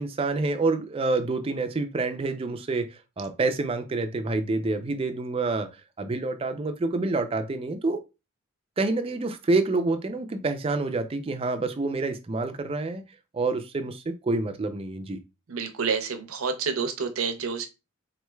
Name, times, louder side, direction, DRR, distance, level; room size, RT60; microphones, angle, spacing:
voice 1, 0.0-5.7 6.0-8.0 8.8-13.0 13.3-15.2, right 3 dB, 25° right, 0.3 m, -27 dB
voice 2, 15.5-17.7, right 5 dB, 80° right, 0.6 m, -28 dB
3.8 x 3.1 x 2.2 m
head